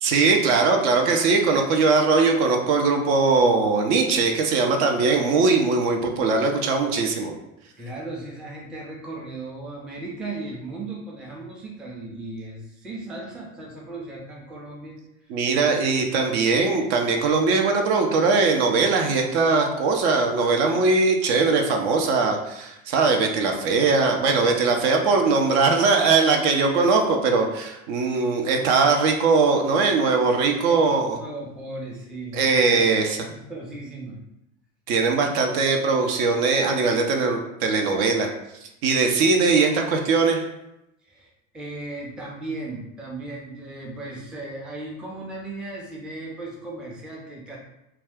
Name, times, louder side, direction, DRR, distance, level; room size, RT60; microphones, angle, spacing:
voice 1, 0.0-7.3 15.3-31.2 32.3-33.2 34.9-38.3 38.8-40.4, right 4 dB, 50° right, 3 dB, 0.5 m, -20 dB
voice 2, 7.8-15.0 15.2-15.3 30.7-33.0 33.3-34.2 39.1-39.2 41.0-47.6, right 2 dB, ahead, -3 dB, 0.4 m, -36 dB
2.4 x 2.3 x 3.4 m, 0.87 s
figure-of-eight pair, 75°, 42 cm